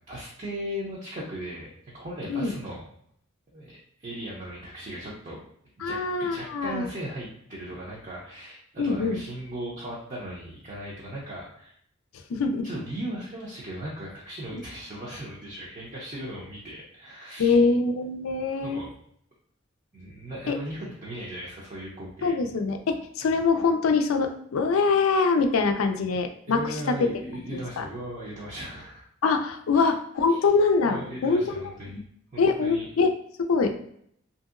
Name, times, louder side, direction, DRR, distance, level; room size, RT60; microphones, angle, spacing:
voice 1, 0.1-2.8 3.5-5.4 5.8-11.7 12.3-17.6 18.6-18.9 19.9-22.4 26.5-29.0 29.7-29.9 30.3-30.4 30.8-32.0 32.3-32.9, right 1 dB, 35° right, -6 dB, 0.5 m, -37 dB
voice 2, 5.8-6.9 8.8-9.2 12.3-12.7 14.5-14.6 17.4-18.8 20.5-20.6 22.2-26.6 27.5-27.8 29.2-32.0 32.4-33.1 33.5-33.8, left 4 dB, 85° left, 5 dB, 0.4 m, -24 dB
2.8 x 2.7 x 2.4 m, 0.68 s
head